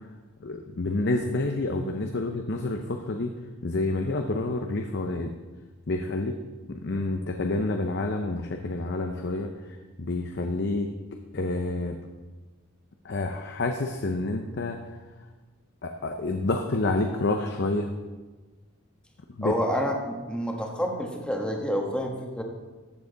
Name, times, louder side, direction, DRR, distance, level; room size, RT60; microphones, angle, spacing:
voice 1, 0.4-3.3 3.6-5.3 5.9-6.3 6.7-10.9 11.3-12.0 13.0-14.8 15.8-17.9 19.3-19.5, left 2 dB, 55° left, 4 dB, 0.7 m, -28 dB
voice 2, 19.4-22.4, equal, 5° left, 1 dB, 1.2 m, -28 dB
14.0 x 7.6 x 4.0 m, 1.3 s
head